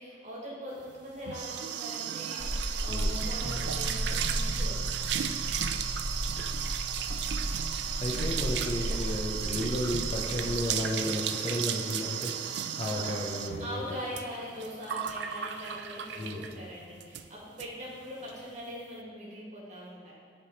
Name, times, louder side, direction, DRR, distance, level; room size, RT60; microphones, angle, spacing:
voice 1, 0.0-4.8 12.8-13.3 13.6-20.1, equal, 40° right, -5 dB, 1.8 m, -42 dB
sound 1, 0.9-16.6 17.0-17.3 17.6-17.7 18.0-18.3, right 9 dB, 70° right, 0.4 m, -34 dB
sound 2, 2.4-10.7, equal, 85° left, 1.1 m, -35 dB
sound 3, 3.4-15.7 15.9-16.2 17.8-17.9, right 2 dB, 20° right, 0.7 m, -47 dB
voice 2, 8.0-14.0 16.1-16.6, left 1 dB, 35° left, 1 dB, 0.6 m, -33 dB
10.0 x 3.5 x 4.0 m, 2.1 s
head